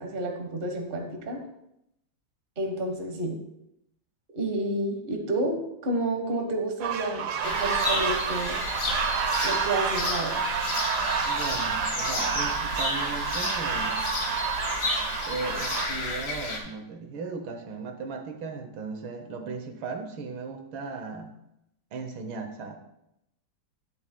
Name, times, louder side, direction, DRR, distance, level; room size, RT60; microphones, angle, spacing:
voice 1, 0.0-1.4 2.6-3.4 4.3-8.6 9.4-10.4, right 1 dB, 30° right, 3 dB, 1.2 m, -30 dB
sound 1, 6.8-15.9, right 6 dB, 65° right, 0.9 m, -29 dB
sound 2, 7.4-16.6, left 2 dB, 50° left, 1.8 m, -32 dB
voice 2, 11.3-14.0 15.3-21.3 21.9-22.8, right 4 dB, 80° right, 6 dB, 1.7 m, -37 dB
10.5 x 10.5 x 2.2 m, 0.83 s
omnidirectional pair, 2.2 m